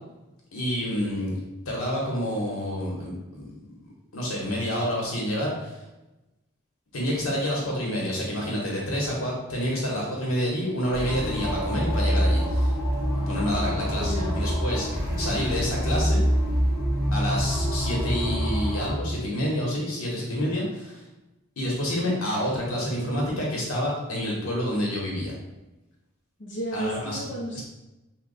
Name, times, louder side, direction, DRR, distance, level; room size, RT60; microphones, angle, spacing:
voice 1, 0.5-1.4 1.6-5.8 6.9-12.7 13.3-14.9 15.2-16.2 17.1-21.0 21.6-25.3 26.7-27.2 27.5-27.6, equal, 90° left, -3 dB, 1.1 m, -28 dB
sound 1, 10.9-18.9, equal, 10° right, 1.3 m, -25 dB
voice 2, 14.0-14.5 26.4-27.6, equal, 55° left, -5 dB, 0.6 m, -32 dB
3.1 x 2.3 x 3.8 m, 0.99 s
head